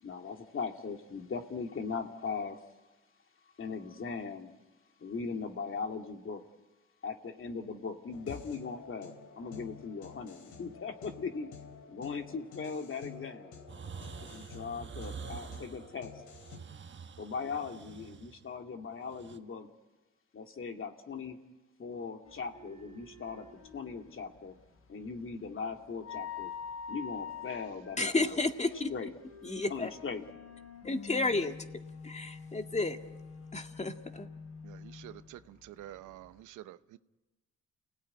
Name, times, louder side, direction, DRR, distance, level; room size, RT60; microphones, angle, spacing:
voice 1, 0.0-2.6 3.6-4.5 5.0-6.4 7.0-11.5 11.9-13.6 14.2-16.1 17.2-19.7 20.3-21.4 21.8-23.5 23.7-24.5 24.9-26.5 26.9-28.4 28.9-29.1 29.7-30.2, left 5 dB, 45° left, 5 dB, 2.4 m, -39 dB
sound 1, 8.1-16.6, left 5 dB, 80° left, 3.8 m, -50 dB
sound 2, 13.7-19.4, right 6 dB, 40° right, 1.4 m, -46 dB
sound 3, 22.2-36.4, left 6 dB, 60° left, 6.0 m, -47 dB
voice 2, 28.0-28.9 29.4-29.9 30.8-31.5 32.0-33.0 33.5-34.3, left 2 dB, 20° left, 6 dB, 2.0 m, -31 dB
voice 3, 34.6-37.0, right 13 dB, 85° right, 13 dB, 0.9 m, -49 dB
29.0 x 17.5 x 9.9 m, 1.1 s
cardioid pair, 90°, 30 cm